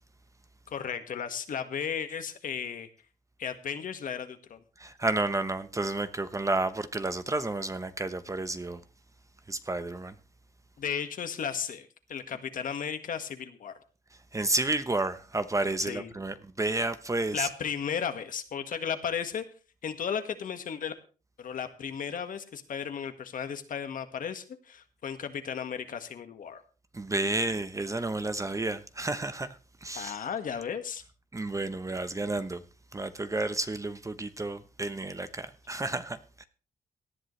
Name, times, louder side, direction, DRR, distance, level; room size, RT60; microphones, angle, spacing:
voice 1, 0.7-2.9 3.4-4.6 10.8-13.7 15.8-16.1 17.3-19.4 19.8-20.9 21.4-26.6 29.9-31.0, left 7 dB, 65° left, 9 dB, 1.7 m, -35 dB
voice 2, 4.8-8.8 9.5-10.1 14.3-17.5 26.9-30.1 31.3-32.6 32.9-36.4, right 2 dB, 20° right, 11 dB, 0.9 m, -31 dB
18.0 x 11.0 x 3.3 m, 0.36 s
cardioid pair, 85°, 15 cm